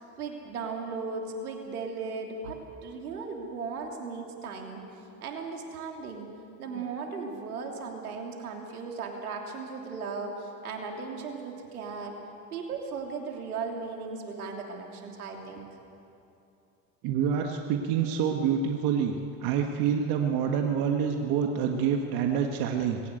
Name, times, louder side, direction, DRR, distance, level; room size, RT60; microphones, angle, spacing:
voice 1, 0.2-4.8 5.2-6.3 6.6-12.2 12.5-15.7, right 4 dB, 85° right, 2 dB, 3.2 m, -37 dB
voice 2, 17.0-19.2 19.4-23.0, right 7 dB, 55° right, 3 dB, 1.7 m, -27 dB
20.5 x 17.5 x 8.0 m, 2.8 s
hypercardioid pair, 90°, 43 cm